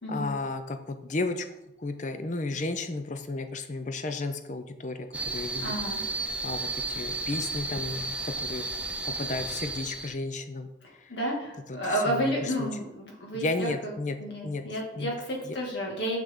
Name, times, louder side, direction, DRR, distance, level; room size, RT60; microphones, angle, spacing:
voice 1, 0.1-1.4 1.8-5.1 5.3-5.7 6.4-8.7 9.0-10.7 11.8-12.3 12.6-12.7 13.3-14.2 14.4-14.6 15.0-15.1 15.5-15.6, left 2 dB, 40° left, 8 dB, 0.6 m, -33 dB
sound 1, 5.1-10.2, right 3 dB, 5° right, 0.4 m, -33 dB
voice 2, 5.6-6.0 10.8-13.9 14.2-16.2, equal, 70° left, -1 dB, 2.2 m, -31 dB
6.8 x 6.5 x 3.8 m, 0.89 s
head